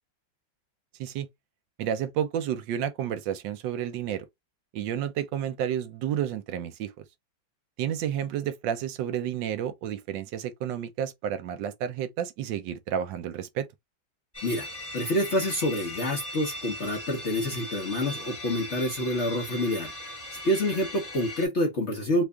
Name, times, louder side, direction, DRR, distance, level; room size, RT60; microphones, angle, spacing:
voice 1, 1.8-4.3 4.7-7.0 7.8-13.7, right 9 dB, 75° right, 1.2 m, -31 dB
sound 1, 14.3-21.5, left 1 dB, 10° left, 0.9 m, -39 dB
voice 2, 14.9-20.1 20.4-22.2, left 1 dB, 55° left, 0.8 m, -27 dB
3.3 x 2.3 x 3.4 m
omnidirectional pair, 2.1 m